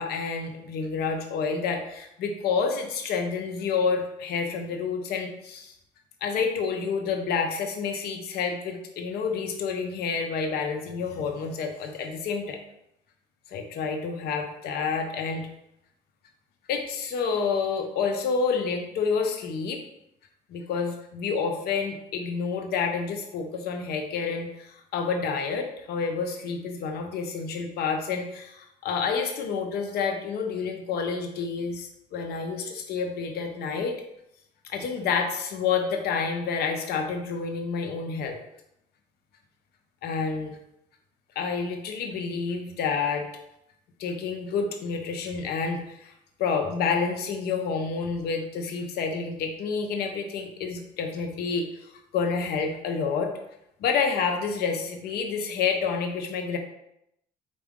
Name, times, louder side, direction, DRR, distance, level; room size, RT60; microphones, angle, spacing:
voice 1, 0.0-5.7 6.2-12.6 13.5-15.5 16.7-19.8 20.5-34.0 34.6-38.4 40.0-40.6 41.4-43.3 44.0-46.1 46.4-53.3 53.8-56.6, left 5 dB, 70° left, 4 dB, 0.7 m, -29 dB
4.8 x 2.5 x 3.6 m, 0.80 s
cardioid pair, 110°, 17 cm